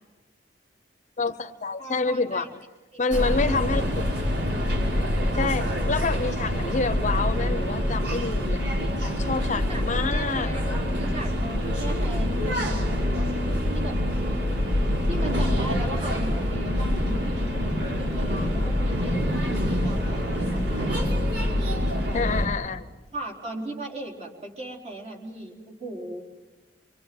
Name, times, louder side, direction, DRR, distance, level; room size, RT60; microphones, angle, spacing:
voice 1, 1.2-2.5 3.0-3.8 5.3-8.6 9.0-10.5 22.1-22.8, left 4 dB, 45° left, 12 dB, 0.8 m, -27 dB
voice 2, 1.8-2.5 2.9-3.0 9.5-13.3 13.7-14.0 15.0-21.1 21.7-22.2 23.1-26.2, right 2 dB, 40° right, 0 dB, 4.5 m, -38 dB
sound 1, 3.1-22.5, left 1 dB, 70° right, 5.6 m, -25 dB
26.0 x 25.0 x 7.9 m, 1.2 s
head